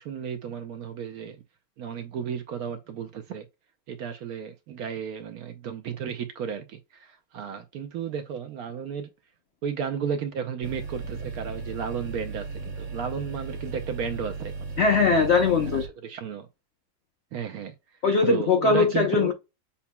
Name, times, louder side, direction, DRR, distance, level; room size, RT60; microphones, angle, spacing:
voice 1, 0.0-1.4 1.8-3.5 3.9-9.1 9.6-14.5 15.1-15.2 15.6-16.5 17.3-17.7 18.2-19.3, right 7 dB, 70° right, 0.9 m, -33 dB
sound 1, 10.6-15.9, right 4 dB, 50° right, 1.3 m, -36 dB
voice 2, 14.8-15.8 18.0-19.3, left 4 dB, 80° left, 0.6 m, -21 dB
6.9 x 2.8 x 2.2 m
omnidirectional pair, 1.9 m